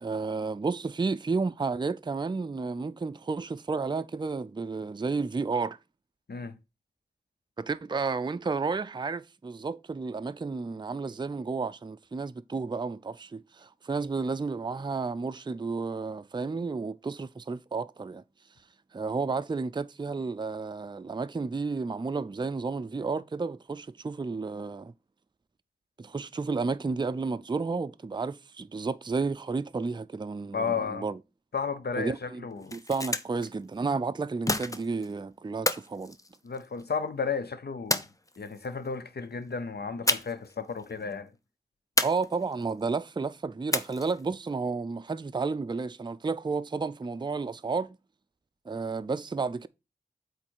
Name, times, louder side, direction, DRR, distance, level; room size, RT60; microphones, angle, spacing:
voice 1, 0.0-5.8 7.6-18.2 18.9-24.9 26.0-31.2 32.0-32.5 32.7-36.2 42.0-48.0 48.7-49.7, right 4 dB, 30° right, 0.4 m, -32 dB
voice 2, 30.5-31.0 31.5-32.8 36.4-38.0 38.4-41.3, left 5 dB, 85° left, 0.6 m, -33 dB
sound 1, 32.5-33.5 34.5-35.1 35.7-36.9 37.9-38.7 40.1-40.5 40.8-40.9 42.0-42.7 43.7-44.3, left 2 dB, 20° left, 0.6 m, -30 dB
8.3 x 3.2 x 4.5 m
wide cardioid pair, 50°, 16 cm